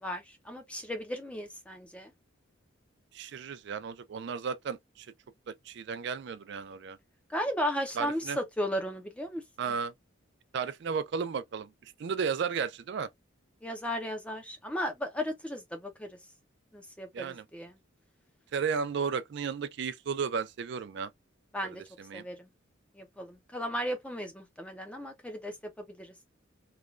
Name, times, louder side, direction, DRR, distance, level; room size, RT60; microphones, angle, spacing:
voice 1, 0.0-2.1 7.3-9.4 13.6-16.1 16.7-17.8 21.5-21.8 22.1-22.5 23.0-26.1, equal, 5° left, 0.5 m, -35 dB
voice 2, 3.1-5.1 5.5-7.0 8.0-8.4 9.6-9.9 10.5-11.7 12.0-13.1 17.1-17.4 18.5-21.1 21.6-22.3, right 6 dB, 60° right, 0.4 m, -34 dB
3.1 x 2.2 x 2.3 m
head